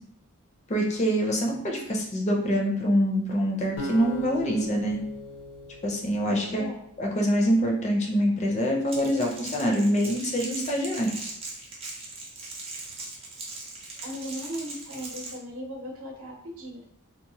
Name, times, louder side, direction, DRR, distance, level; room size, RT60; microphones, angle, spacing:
voice 1, 0.7-5.0 5.8-6.6 7.0-11.1, equal, 30° left, 0 dB, 0.4 m, -25 dB
sound 1, 3.8-6.9, left 1 dB, 85° left, 0.7 m, -39 dB
voice 2, 6.3-6.8 14.0-16.8, equal, 70° right, 0 dB, 0.7 m, -37 dB
Crackle, 8.9-15.4, right 3 dB, 25° right, 0.5 m, -39 dB
2.8 x 2.0 x 2.7 m, 0.70 s
head